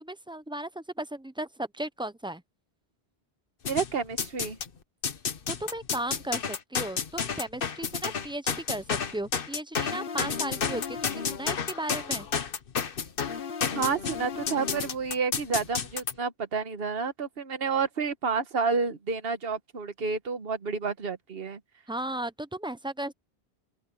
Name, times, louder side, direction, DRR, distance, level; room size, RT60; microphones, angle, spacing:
voice 1, 0.0-2.4 5.5-12.3 21.9-23.1, right 1 dB, 5° right, 0.4 m, -35 dB
sound 1, 3.6-4.7 5.0-16.1, left 6 dB, 55° left, 1.2 m, -31 dB
voice 2, 3.7-4.6 13.7-21.6, right 5 dB, 65° right, 1.4 m, -30 dB
open air
omnidirectional pair, 1.1 m